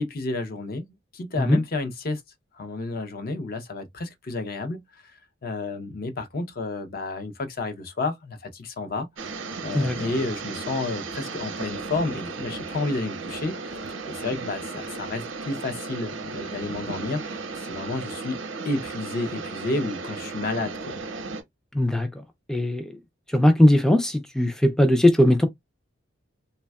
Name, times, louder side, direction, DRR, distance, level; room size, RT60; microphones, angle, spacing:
voice 1, 0.0-2.2 2.5-5.1 5.4-9.3 9.6-13.8 14.1-17.2 17.6-18.4 18.6-21.0, left 2 dB, 50° left, 0.5 m, -31 dB
sound 1, 9.2-21.4, right 4 dB, 85° right, 0.7 m, -35 dB
voice 2, 21.7-22.1 22.5-23.0 23.3-25.5, left 1 dB, 5° left, 0.3 m, -19 dB
3.3 x 2.1 x 2.2 m
head